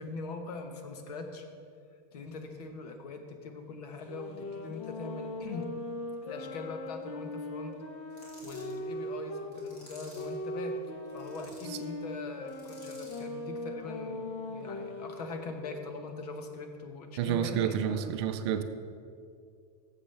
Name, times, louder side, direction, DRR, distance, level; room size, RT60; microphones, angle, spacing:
voice 1, 0.0-1.5 2.1-5.7 6.2-7.7 8.4-10.7 11.1-18.1, left 3 dB, 75° left, 6 dB, 1.2 m, -42 dB
sound 1, 4.0-9.5 10.1-15.5, left 1 dB, 50° left, 1.1 m, -39 dB
sound 2, 8.1-8.8 9.5-10.4 11.1-11.8 12.5-13.3, left 1 dB, 30° left, 2.4 m, -54 dB
voice 2, 17.2-18.6, right 9 dB, 45° right, 9 dB, 0.5 m, -29 dB
13.5 x 7.3 x 3.3 m, 2.3 s
supercardioid pair, 175°, 20 cm